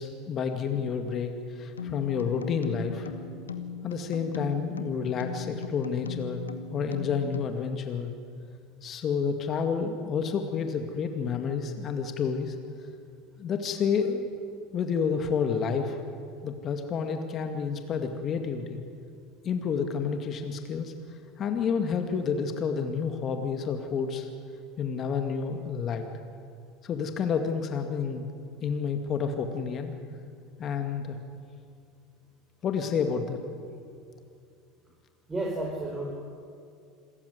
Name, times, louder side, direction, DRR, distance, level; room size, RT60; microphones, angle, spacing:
voice 1, 0.0-3.1 3.8-8.1 8.8-12.6 13.4-14.3 14.7-16.0 16.4-18.8 19.4-20.9 21.4-24.3 24.8-26.1 26.8-28.3 28.6-29.9 30.6-31.2 32.6-33.4, left 6 dB, 40° left, 5 dB, 2.1 m, -29 dB
sound 1, 1.8-7.5, left 6 dB, 85° left, 1.2 m, -39 dB
voice 2, 35.3-36.1, right 2 dB, 15° right, -1 dB, 4.9 m, -31 dB
27.5 x 14.5 x 9.5 m, 2.4 s
hypercardioid pair, 75°, 0 cm